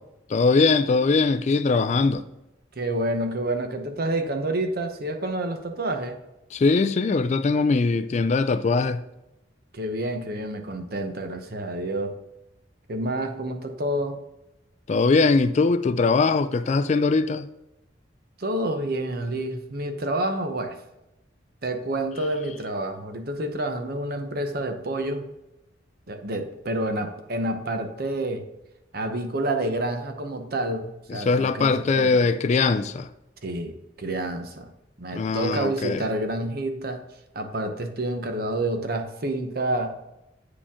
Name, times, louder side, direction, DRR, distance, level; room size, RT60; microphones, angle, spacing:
voice 1, 0.3-2.2 6.5-9.0 14.9-17.5 31.1-33.1 35.1-36.1, left 4 dB, 40° left, 0.3 m, -21 dB
voice 2, 2.8-6.2 9.7-12.1 12.9-14.2 18.4-20.8 21.6-25.3 26.1-28.4 28.9-32.2 33.4-34.7 35.0-37.0 37.3-39.9, right 1 dB, 55° right, 0.9 m, -28 dB
8.4 x 5.0 x 3.6 m
head